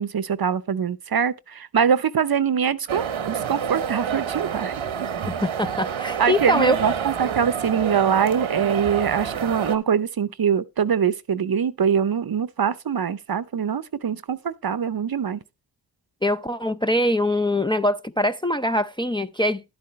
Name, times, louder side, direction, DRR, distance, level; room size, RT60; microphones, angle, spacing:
voice 1, 0.0-4.7 6.2-15.4, right 7 dB, 50° right, 0.7 m, -23 dB
sound 1, 2.9-9.8, right 7 dB, 90° right, 1.0 m, -28 dB
voice 2, 5.3-6.8 16.2-19.6, left 1 dB, 10° left, 0.4 m, -23 dB
11.0 x 8.6 x 3.1 m
cardioid pair, 50°, 47 cm